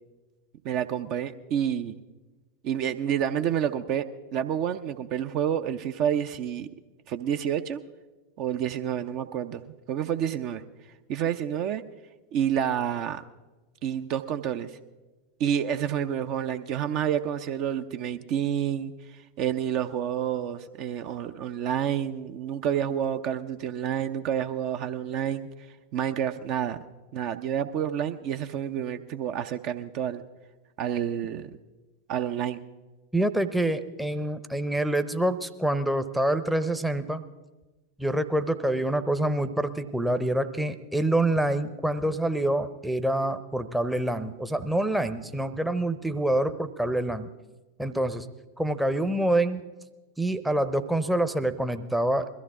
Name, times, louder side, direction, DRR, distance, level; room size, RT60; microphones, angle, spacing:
voice 1, 0.6-2.0 2.6-4.0 4.3-6.7 7.1-7.8 8.4-10.6 11.1-11.8 12.3-13.2 13.8-14.8 15.4-25.5 25.9-26.8 27.1-30.2 30.8-31.5 32.1-32.6, right 9 dB, 40° right, 9 dB, 0.6 m, -29 dB
voice 2, 33.1-37.2 38.0-47.3 47.8-48.3 48.6-49.6 50.2-52.3, right 1 dB, 5° right, 10 dB, 0.7 m, -26 dB
21.5 x 14.0 x 3.6 m, 1.2 s
figure-of-eight pair, 90°, 0 cm